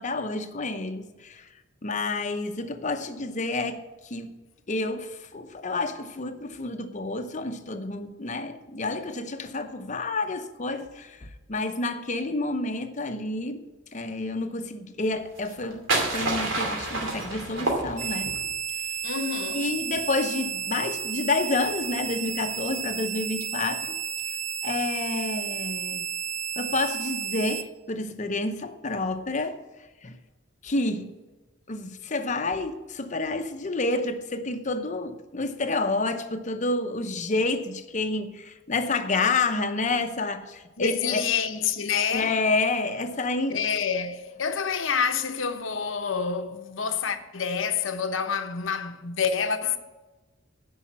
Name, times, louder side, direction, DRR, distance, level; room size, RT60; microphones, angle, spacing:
voice 1, 0.0-1.5 1.8-4.3 4.7-13.6 13.9-18.5 19.5-24.0 24.3-24.4 24.6-26.1 26.6-29.6 30.0-30.1 30.6-31.1 31.7-41.2 42.1-43.6, left 3 dB, 40° left, 0.8 m, -29 dB
sound 1, 15.4-18.4, right 2 dB, 75° right, 2.5 m, -28 dB
sound 2, 18.0-27.6, right 8 dB, 35° right, 0.6 m, -32 dB
voice 2, 19.0-19.7 40.8-42.4 43.5-49.8, left 6 dB, 75° left, 0.8 m, -28 dB
9.8 x 5.6 x 7.4 m
head